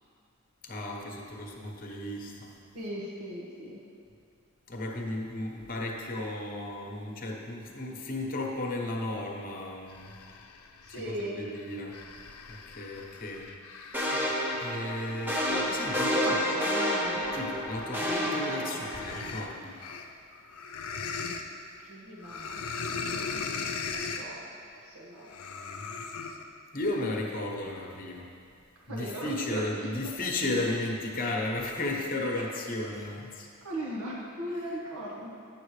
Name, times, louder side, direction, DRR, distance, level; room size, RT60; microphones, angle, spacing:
voice 1, 0.6-2.5 4.7-10.1 10.9-12.0 12.5-13.5 14.1-14.2 14.6-16.4 17.3-19.7 26.7-28.3 28.9-33.5, left 2 dB, 40° left, 0 dB, 1.0 m, -34 dB
voice 2, 2.7-3.8 10.8-11.4 16.1-17.2 21.9-22.6 23.0-23.4 23.8-24.5 24.8-25.4 28.9-29.9 32.4-32.5 33.6-35.3, right 1 dB, 85° right, -5 dB, 1.3 m, -38 dB
sound 1, 9.9-11.0 11.6-18.3 18.6-21.4 22.2-24.3 25.2-26.4, left 5 dB, 90° left, 0.6 m, -39 dB
sound 2, 13.9-19.3, equal, 10° right, 0.8 m, -30 dB
10.5 x 7.3 x 3.2 m, 2.3 s
head